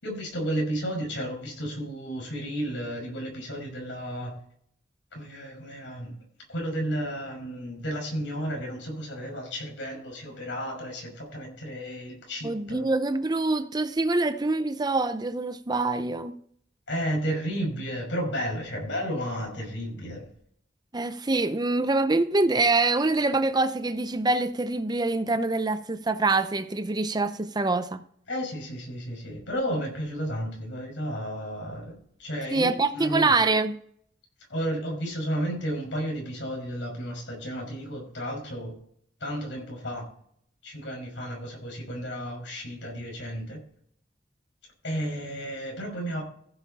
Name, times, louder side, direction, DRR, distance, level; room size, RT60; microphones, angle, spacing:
voice 1, 0.0-4.3 5.1-6.2 6.5-12.8 16.9-20.3 28.3-33.4 34.5-38.8 39.2-40.1 40.6-43.6 44.8-46.2, equal, 85° left, 5.7 m, -32 dB
voice 2, 12.4-16.3 20.9-28.0 32.5-33.8, right 3 dB, 25° right, 0.6 m, -25 dB
15.0 x 7.1 x 4.1 m
head